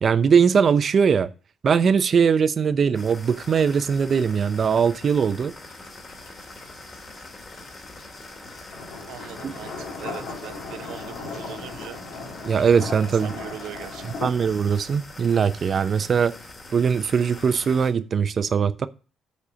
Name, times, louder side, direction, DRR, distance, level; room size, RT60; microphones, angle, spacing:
voice 1, 0.0-1.3 1.6-5.5 9.4-9.5 12.4-13.4 14.0-16.3 16.7-18.9, right 6 dB, 50° right, 0.7 m, -21 dB
sound 1, 2.9-17.9, left 2 dB, 30° left, 2.6 m, -43 dB
sound 2, 5.6-14.3, left 4 dB, 85° left, 2.1 m, -38 dB
voice 2, 9.1-12.0 13.2-14.3, right 12 dB, 85° right, 0.7 m, -40 dB
8.5 x 4.3 x 6.2 m
cardioid pair, 90°, 0 cm